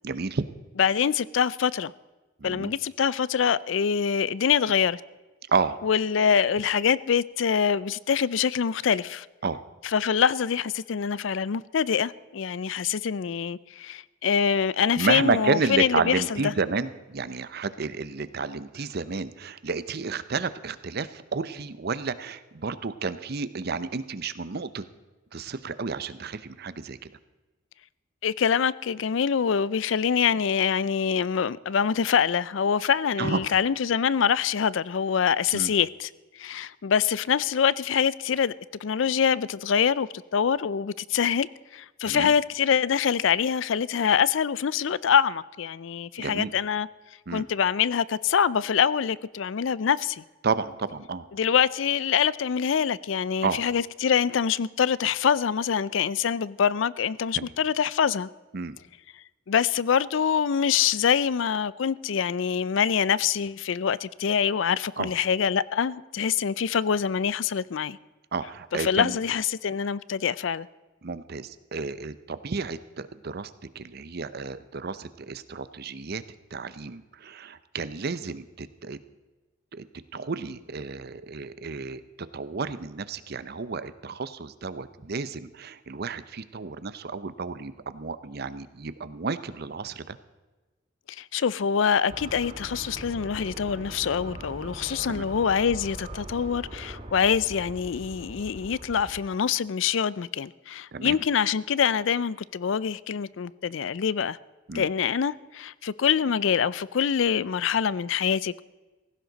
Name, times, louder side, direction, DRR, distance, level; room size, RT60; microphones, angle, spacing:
voice 1, 0.0-0.4 2.4-2.7 5.5-5.8 9.4-9.6 15.0-24.9 25.3-27.1 33.2-33.4 35.5-35.7 42.0-42.3 46.2-46.5 47.3-47.5 50.4-51.2 53.4-53.6 57.3-57.5 58.5-58.8 65.0-65.1 68.3-69.2 71.0-73.5 73.7-76.2 76.5-79.0 79.7-79.8 80.1-82.0 82.3-90.2 95.1-95.3 100.9-101.2 104.7-104.9, right 4 dB, 55° right, 0.7 m, -31 dB
voice 2, 0.8-1.9 2.4-5.0 5.8-9.3 9.8-16.5 28.2-36.1 36.4-38.5 38.8-41.5 41.7-46.9 47.3-50.2 51.3-58.3 59.5-68.0 68.7-70.7 91.2-104.4 104.7-108.6, left 7 dB, 70° left, 0.4 m, -25 dB
sound 1, 92.1-99.2, right 1 dB, 30° right, 1.9 m, -41 dB
17.5 x 15.5 x 4.0 m
head